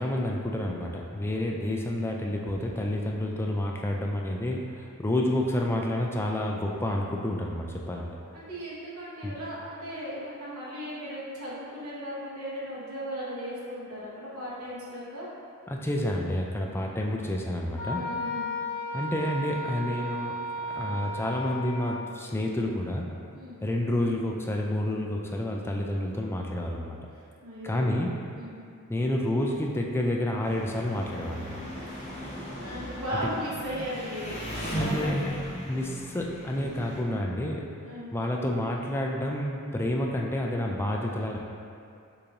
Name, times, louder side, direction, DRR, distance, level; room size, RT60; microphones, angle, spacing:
voice 1, 0.0-8.1 9.2-9.3 15.7-18.0 18.9-20.4 20.7-23.1 23.6-27.0 27.6-28.1 28.9-31.6 33.1-33.3 34.8-35.3 35.7-37.7 38.1-41.4, left 1 dB, 10° left, 0 dB, 0.3 m, -29 dB
voice 2, 8.3-15.3 17.9-18.5 23.3-23.6 27.4-27.9 28.3-28.6 31.9-32.2 32.5-35.3 37.8-38.1, equal, 75° right, -7 dB, 1.1 m, -37 dB
Wind instrument woodwind instrument, 17.8-22.1, left 1 dB, 85° left, 1.2 m, -34 dB
Engine, 30.4-37.0, equal, 30° left, 0.9 m, -36 dB
6.7 x 2.6 x 2.9 m, 2.4 s
head